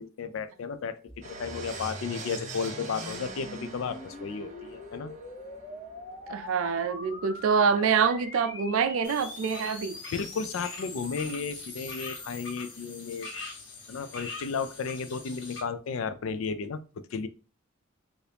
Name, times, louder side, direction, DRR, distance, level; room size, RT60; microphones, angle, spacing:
voice 1, 0.0-5.1 10.1-13.3 13.9-16.8 17.1-17.3, left 5 dB, 80° left, 0.4 m, -34 dB
sound 1, 1.1-12.4, left 2 dB, 15° left, 0.5 m, -44 dB
sound 2, 1.2-10.9 11.2-11.3 11.5-11.6 14.1-14.2 14.4-14.5 14.7-16.5, right 3 dB, 35° right, 0.6 m, -45 dB
voice 2, 6.3-10.0, right 6 dB, 80° right, 0.4 m, -26 dB
sound 3, 9.0-15.6, left 3 dB, 60° left, 0.8 m, -43 dB
2.8 x 2.6 x 3.2 m
head